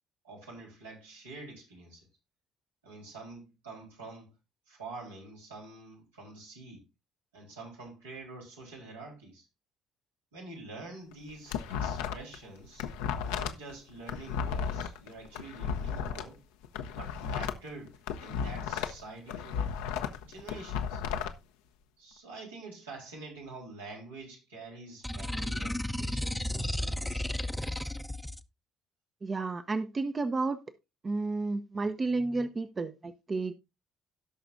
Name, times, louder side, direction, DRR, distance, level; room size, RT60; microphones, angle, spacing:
voice 1, 0.2-2.1 2.8-4.3 4.7-6.8 7.3-9.5 10.3-12.9 13.2-16.4 16.9-19.7 20.2-21.0 22.0-27.3, right 3 dB, 90° right, 3.8 m, -47 dB
sound 1, 11.1-12.4 12.6-16.2 16.6-19.0 19.3-21.3, left 7 dB, 75° left, 0.8 m, -34 dB
sound 2, 25.0-28.4, left 1 dB, 5° left, 0.8 m, -33 dB
voice 2, 29.2-30.6 31.0-33.5, right 3 dB, 35° right, 0.8 m, -31 dB
17.5 x 6.0 x 2.6 m
hypercardioid pair, 50°, 0 cm